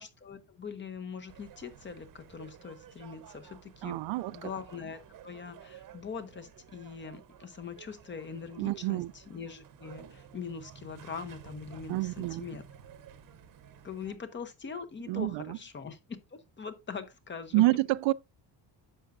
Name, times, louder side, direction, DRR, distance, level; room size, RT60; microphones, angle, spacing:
voice 1, 0.0-4.0 4.3-12.6 13.8-17.7, left 6 dB, 25° left, 0.8 m, -42 dB
sound 1, 1.3-14.2, right 8 dB, 45° right, 0.8 m, -53 dB
voice 2, 3.8-4.5 8.6-9.1 11.9-12.4 15.1-15.6 17.5-18.1, right 19 dB, 85° right, 0.5 m, -28 dB
10.0 x 6.9 x 2.5 m
cardioid pair, 180°, 43 cm